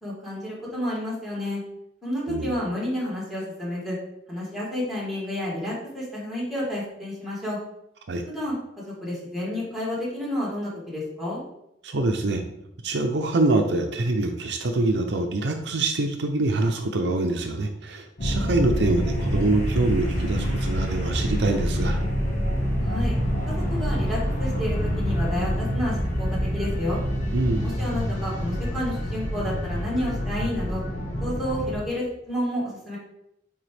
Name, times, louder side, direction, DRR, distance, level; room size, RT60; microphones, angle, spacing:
voice 1, 0.0-1.6 2.0-4.0 4.3-7.6 8.3-11.4 22.8-23.2 23.7-27.0 27.6-30.8 31.2-33.0, left 1 dB, ahead, -6 dB, 2.4 m, -30 dB
voice 2, 11.8-12.4 12.8-22.0 27.3-27.7, right 2 dB, 65° right, 5 dB, 0.6 m, -25 dB
sound 1, 18.2-31.8, equal, 45° left, 1.4 m, -26 dB
8.8 x 3.6 x 3.4 m, 0.82 s
head